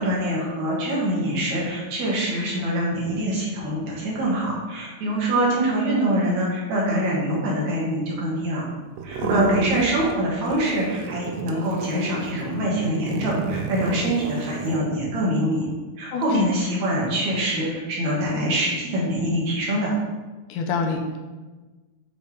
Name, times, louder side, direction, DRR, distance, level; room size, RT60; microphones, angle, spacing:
voice 1, 0.0-8.7 9.0-15.7 16.0-19.9, right 1 dB, 65° right, -4 dB, 2.9 m, -24 dB
sound 1, 9.0-10.2 10.5-14.8, right 5 dB, 80° right, 1.4 m, -31 dB
voice 2, 16.1-16.4 20.5-21.2, left 5 dB, 80° left, 2 dB, 2.2 m, -26 dB
7.3 x 4.2 x 4.9 m, 1.3 s
omnidirectional pair, 3.5 m